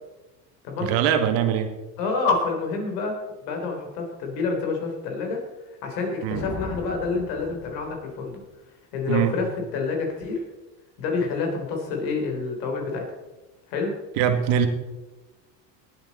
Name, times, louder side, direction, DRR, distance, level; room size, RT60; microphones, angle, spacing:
voice 1, 0.8-1.7 6.2-6.4 9.1-9.3 14.2-14.7, right 9 dB, 70° right, 7 dB, 1.8 m, -22 dB
voice 2, 2.0-3.2 3.4-5.4 5.8-8.4 8.9-10.4 11.0-13.1 13.7-13.9, left 4 dB, 85° left, 2 dB, 3.7 m, -27 dB
Thunder, 6.3-8.5, left 3 dB, 35° left, 2.0 m, -38 dB
19.0 x 8.9 x 4.2 m, 1.1 s
supercardioid pair, 95°, 48 cm